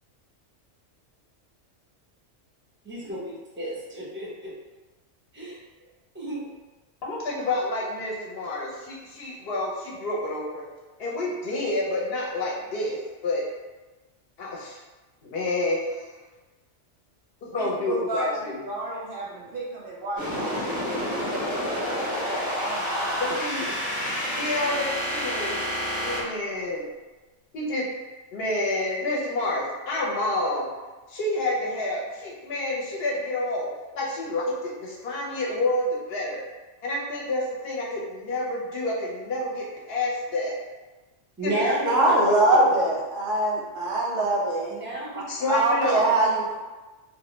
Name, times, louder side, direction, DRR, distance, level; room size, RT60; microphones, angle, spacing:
voice 1, 2.8-4.5 5.3-5.6 6.1-6.5 41.4-42.2 44.2-44.3 44.7-45.2, right 1 dB, 15° right, -7 dB, 0.4 m, -31 dB
voice 2, 7.0-10.6 11.0-13.4 14.4-14.8 15.2-16.1 17.5-18.6 23.2-23.7 24.1-25.6 26.0-26.8 27.5-27.8 28.3-30.7 31.1-33.7 33.9-36.4 36.8-40.6 41.4-41.5 41.8-42.0 42.3-42.7 45.3-46.2, left 2 dB, 65° left, -4 dB, 0.7 m, -29 dB
voice 3, 17.5-23.1 24.1-24.3, right 2 dB, 60° right, -5 dB, 0.6 m, -35 dB
sound 1, 20.2-26.2, equal, 20° left, 0.8 m, -29 dB
voice 4, 41.9-44.7 45.1-46.5, right 2 dB, 90° right, -2 dB, 1.0 m, -22 dB
2.4 x 2.1 x 2.9 m, 1.2 s
omnidirectional pair, 1.2 m